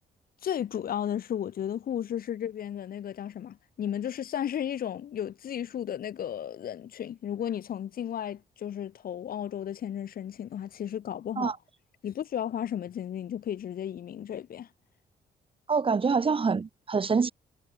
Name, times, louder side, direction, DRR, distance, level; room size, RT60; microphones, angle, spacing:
voice 1, 0.4-11.5 12.0-14.7, left 10 dB, 65° left, 1.6 m, -34 dB
voice 2, 15.7-17.3, right 5 dB, 35° right, 1.2 m, -25 dB
supercardioid pair, 65°, 16 cm